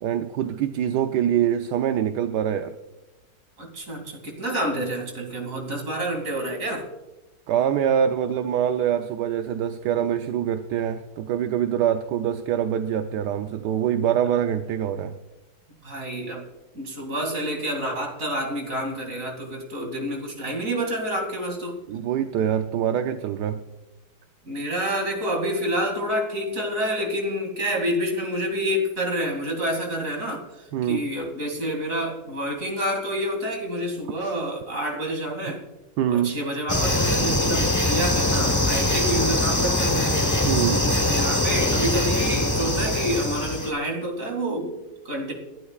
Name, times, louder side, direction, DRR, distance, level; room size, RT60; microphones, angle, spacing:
voice 1, 0.0-2.7 7.5-15.2 21.9-23.6 30.7-31.1 34.2-34.3 36.0-36.4 40.4-40.9, right 9 dB, 75° right, 8 dB, 1.2 m, -24 dB
voice 2, 3.6-6.9 15.8-16.4 16.7-21.8 24.5-35.6 36.1-40.2 41.0-45.3, equal, 45° right, 1 dB, 2.9 m, -28 dB
sound 1, 36.7-43.7, left 1 dB, 15° left, 0.8 m, -22 dB
29.5 x 11.5 x 2.4 m, 1.0 s
omnidirectional pair, 1.9 m